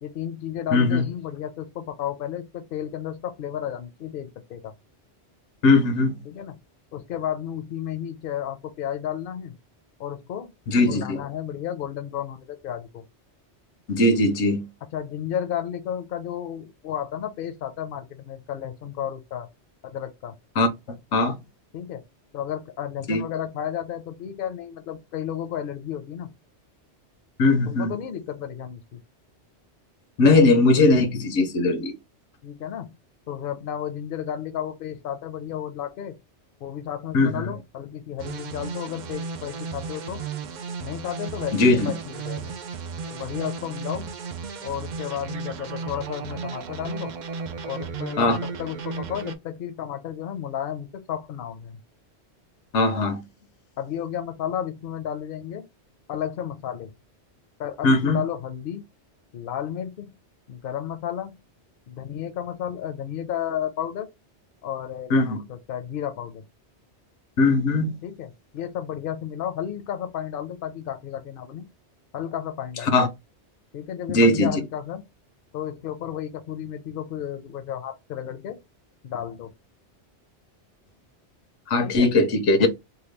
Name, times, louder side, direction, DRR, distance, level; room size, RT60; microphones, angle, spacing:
voice 1, 0.0-4.7 6.3-6.6 6.9-9.5 10.0-10.5 10.8-13.0 14.9-19.5 19.8-20.3 21.7-22.0 22.3-26.3 27.7-29.0 32.4-33.0 33.3-36.2 36.6-40.2 40.8-42.5 43.1-44.1 44.6-47.1 47.6-51.8 53.8-55.7 56.1-56.9 57.6-58.9 59.3-60.1 60.5-61.3 61.9-64.1 64.6-66.4 68.0-71.7 72.1-73.0 73.7-75.0 75.5-78.6 79.0-79.5 81.8-82.1 82.6-82.7, left 10 dB, 60° left, 0.7 m, -32 dB
voice 2, 0.7-1.0 5.6-6.2 10.7-11.2 13.9-14.6 20.6-20.7 21.1-21.4 23.1-23.2 27.4-27.9 30.2-31.9 37.1-37.4 41.5-41.9 48.2-48.4 52.7-53.2 57.8-58.2 65.1-65.4 67.4-67.9 72.9-73.1 74.1-74.6 81.7-82.7, left 2 dB, 85° left, 1.0 m, -19 dB
sound 1, 38.2-49.4, right 5 dB, 60° right, 0.5 m, -34 dB
2.9 x 2.2 x 3.2 m
omnidirectional pair, 1.2 m